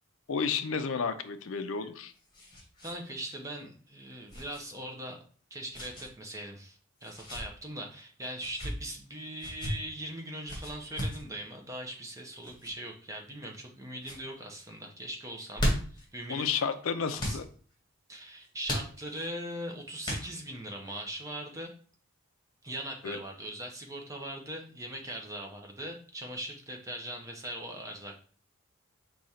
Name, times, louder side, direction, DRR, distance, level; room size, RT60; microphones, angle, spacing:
voice 1, 0.3-2.1 16.3-17.4 23.0-23.2, left 6 dB, 70° left, 10 dB, 0.5 m, -31 dB
sound 1, 1.6-3.0 3.3-3.4 4.3-4.6 5.7-6.1 7.0-7.4 8.3-8.7 9.4-9.7 10.5-11.2 12.4-12.7 13.4-13.7 14.0-14.2 15.3-16.1 17.2-17.4 18.6-19.3 20.0-20.6, equal, 20° left, 1.2 m, -35 dB
voice 2, 2.8-5.2 5.5-16.5 17.1-17.4 18.1-21.7 22.6-28.2, right 1 dB, 15° right, 1 dB, 0.6 m, -40 dB
4.9 x 2.4 x 4.1 m, 0.43 s
head